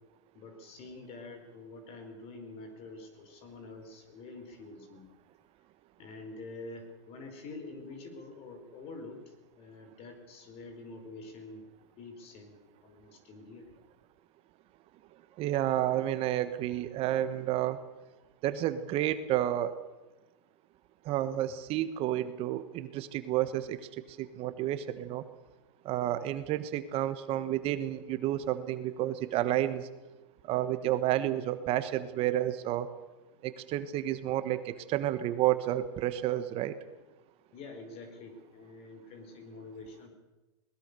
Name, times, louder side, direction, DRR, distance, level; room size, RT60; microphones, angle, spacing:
voice 1, 0.3-5.1 6.0-11.6 12.0-13.7 37.5-40.1, left 3 dB, 40° left, 6 dB, 4.9 m, -47 dB
voice 2, 15.4-17.8 18.4-19.8 21.0-23.8 24.2-25.2 25.8-29.9 30.4-32.9 33.4-36.8, right 13 dB, 40° right, 12 dB, 1.3 m, -30 dB
21.0 x 20.5 x 6.9 m, 1.1 s
hypercardioid pair, 125°, 16 cm